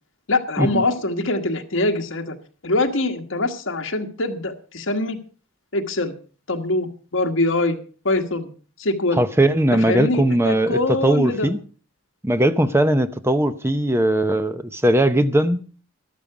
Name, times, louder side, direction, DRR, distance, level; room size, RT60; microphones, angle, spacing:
voice 1, 0.3-2.4 2.6-5.2 5.7-6.2 6.5-7.8 8.0-8.5 8.8-9.2 9.7-11.5, left 2 dB, 70° left, 1.5 m, -23 dB
voice 2, 9.2-11.6 12.2-15.6, right 1 dB, 10° right, 0.6 m, -19 dB
12.5 x 12.0 x 4.9 m
head